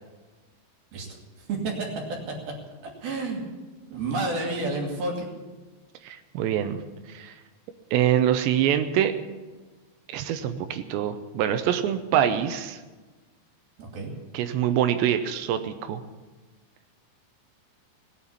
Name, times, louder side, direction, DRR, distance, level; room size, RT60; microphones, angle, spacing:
voice 1, 1.4-2.2 3.0-3.4 3.9-5.3 13.8-14.1, right 3 dB, 55° right, 1 dB, 4.1 m, -30 dB
voice 2, 6.0-6.8 7.1-7.3 7.9-9.1 10.1-12.8 14.3-16.0, right 10 dB, 80° right, 9 dB, 2.9 m, -25 dB
18.5 x 9.1 x 8.6 m, 1.3 s
omnidirectional pair, 5.3 m